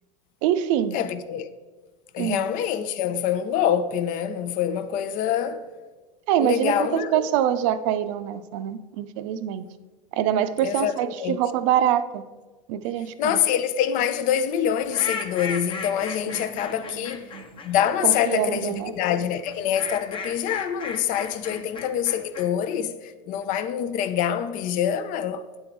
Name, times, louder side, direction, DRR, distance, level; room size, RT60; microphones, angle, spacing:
voice 1, 0.4-1.0 2.2-2.5 6.3-9.6 10.1-12.2 12.7-13.4 16.3-17.6 18.0-18.9 21.6-21.7, right 10 dB, 70° right, 0.5 m, -25 dB
voice 2, 0.9-1.5 2.1-5.7 6.4-7.3 10.6-11.4 13.2-17.3 17.6-25.6, left 9 dB, 50° left, 0.6 m, -25 dB
sound 1, 14.9-18.2 19.4-22.4, left 5 dB, 30° left, 1.0 m, -35 dB
9.4 x 3.6 x 4.6 m
supercardioid pair, 100°, 17 cm